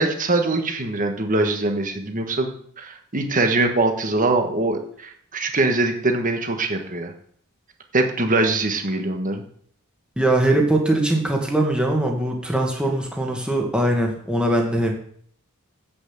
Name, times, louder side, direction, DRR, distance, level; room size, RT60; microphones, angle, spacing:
voice 1, 0.0-2.5 2.8-7.1 7.9-9.4, right 2 dB, 35° right, 5 dB, 1.4 m, -22 dB
voice 2, 10.2-14.9, right 1 dB, 5° right, 1 dB, 1.8 m, -21 dB
8.3 x 7.0 x 7.4 m, 0.63 s
head